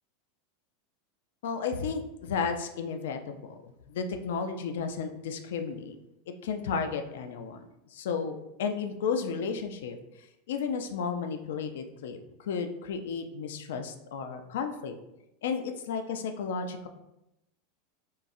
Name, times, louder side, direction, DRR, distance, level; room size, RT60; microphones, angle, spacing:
voice 1, 1.4-6.0 6.4-7.7 7.9-14.9 15.4-16.9, left 5 dB, 80° left, 7 dB, 0.3 m, -33 dB
3.7 x 2.0 x 2.6 m, 0.86 s
supercardioid pair, 135°, 0 cm